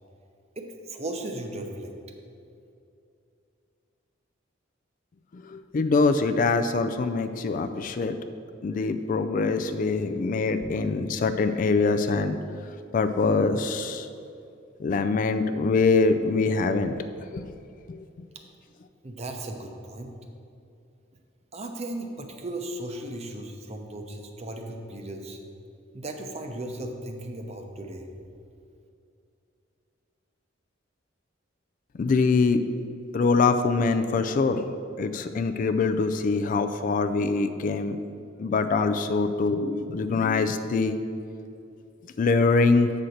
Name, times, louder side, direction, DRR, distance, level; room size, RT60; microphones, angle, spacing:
voice 1, 0.6-1.9 19.0-20.1 21.5-25.4 25.9-28.1, right 1 dB, 35° right, 4 dB, 0.7 m, -36 dB
voice 2, 5.3-8.2 8.6-12.4 12.9-14.1 14.8-17.0 17.3-17.4 17.9-18.0 32.0-32.6 33.1-34.7 35.0-38.0 38.4-41.0 42.2-42.9, left 4 dB, 45° left, 9 dB, 0.3 m, -24 dB
7.6 x 4.2 x 6.4 m, 2.6 s
head